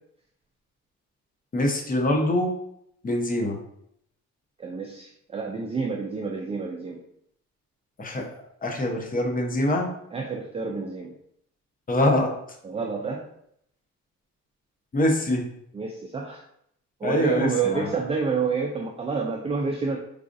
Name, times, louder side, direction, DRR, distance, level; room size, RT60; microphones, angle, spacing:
voice 1, 1.5-2.5 3.0-3.6 8.0-8.3 8.6-9.9 11.9-12.3 14.9-15.5 17.0-17.9, left 1 dB, 30° left, 2 dB, 0.7 m, -24 dB
voice 2, 4.6-7.0 10.1-11.1 12.6-13.2 15.7-16.4 17.0-20.0, right 5 dB, 20° right, 1 dB, 0.4 m, -28 dB
4.8 x 2.4 x 2.5 m, 0.73 s
cardioid pair, 90°, 30 cm